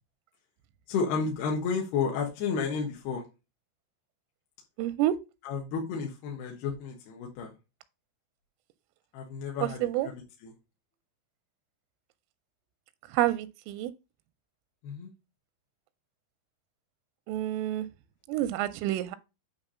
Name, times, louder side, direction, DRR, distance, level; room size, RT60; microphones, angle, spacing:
voice 1, 0.9-3.2 5.4-7.5 9.1-10.1 10.4-10.5 14.8-15.1, left 5 dB, 65° left, 2.9 m, -31 dB
voice 2, 4.8-5.1 9.8-10.1 13.1-13.9 17.3-17.9 18.3-19.2, right 13 dB, 85° right, 3.1 m, -28 dB
9.0 x 3.6 x 5.5 m
omnidirectional pair, 5.7 m